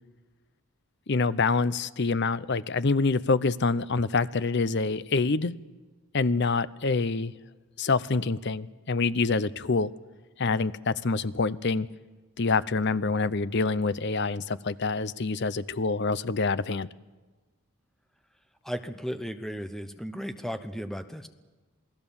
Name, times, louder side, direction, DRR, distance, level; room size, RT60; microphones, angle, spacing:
voice 1, 1.1-5.5 6.1-7.3 7.8-9.9 10.4-11.9 12.4-16.9, left 3 dB, 50° left, 16 dB, 0.7 m, -26 dB
voice 2, 18.6-21.3, equal, ahead, 9 dB, 0.8 m, -35 dB
28.0 x 19.0 x 7.2 m, 1.3 s
head